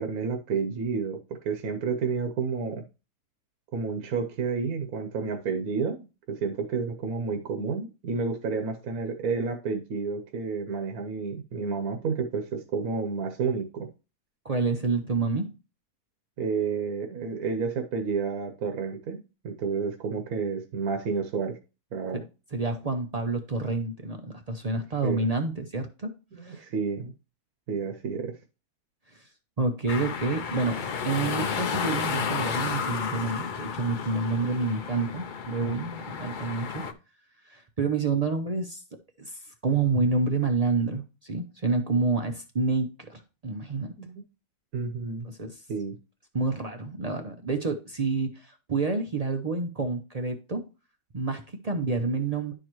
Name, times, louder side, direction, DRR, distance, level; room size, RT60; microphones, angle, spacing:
voice 1, 0.0-2.8 3.7-13.9 16.4-21.6 21.9-22.2 24.7-25.3 26.3-27.1 27.7-28.3 44.0-44.2 44.7-45.3 45.7-46.0, right 5 dB, 70° right, 5 dB, 1.2 m, -30 dB
voice 2, 14.4-15.5 22.5-26.1 26.4-26.6 29.1-29.3 29.6-30.8 31.0-36.8 37.4-38.8 39.2-43.9 45.2-45.6 46.3-50.6 51.1-52.5, right 3 dB, 55° right, 5 dB, 0.4 m, -28 dB
sound 1, 29.9-36.9, left 6 dB, 60° left, 0.5 m, -32 dB
11.0 x 4.7 x 3.0 m, 0.31 s
omnidirectional pair, 1.6 m